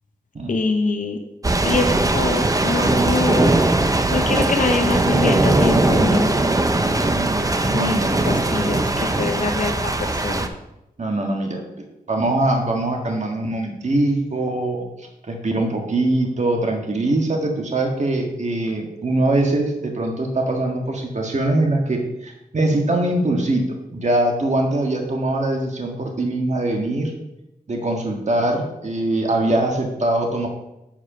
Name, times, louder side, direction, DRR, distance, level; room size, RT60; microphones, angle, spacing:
voice 1, 0.5-1.2 1.6-3.5 4.1-6.3 7.7-8.0 8.2-10.5, left 3 dB, 60° left, 4 dB, 0.8 m, -24 dB
sound 1, 1.4-10.5, right 2 dB, 25° right, 0.8 m, -19 dB
voice 2, 7.1-8.3 11.0-11.6 12.1-27.1 27.7-30.5, right 2 dB, 50° right, 1 dB, 1.6 m, -22 dB
7.4 x 4.9 x 5.8 m, 0.88 s
cardioid pair, 60°, 15 cm